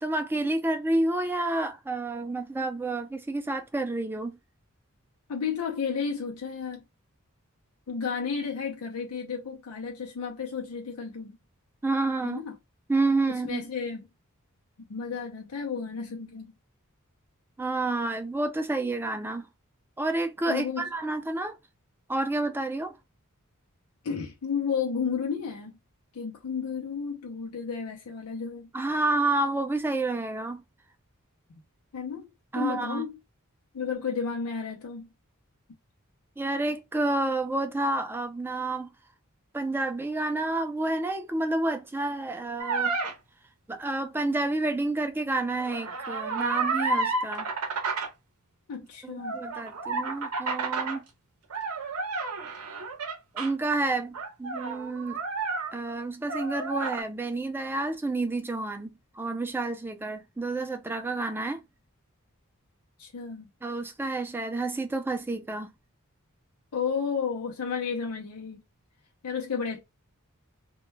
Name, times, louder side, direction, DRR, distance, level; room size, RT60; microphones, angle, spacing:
voice 1, 0.0-4.4 11.8-12.4 12.9-13.7 17.6-19.5 20.0-21.6 22.1-23.0 28.7-30.6 32.5-33.0 36.4-38.9 39.5-43.0 43.7-47.5 49.0-51.0 53.3-55.2 55.7-61.6 63.6-65.7, right 2 dB, 10° right, 0.3 m, -29 dB
voice 2, 5.3-6.8 7.9-11.4 12.2-12.6 13.3-14.0 14.9-16.5 20.5-20.9 24.0-25.8 26.1-28.7 31.9-32.3 32.5-33.2 33.7-35.1 48.7-49.4 63.0-63.5 66.7-68.6 69.2-69.8, left 6 dB, 90° left, 0.5 m, -32 dB
sound 1, 42.6-43.1 45.6-48.1 49.2-51.0 51.5-53.5 54.1-56.0 56.3-57.0, right 3 dB, 80° right, 0.6 m, -31 dB
2.2 x 2.1 x 3.1 m
head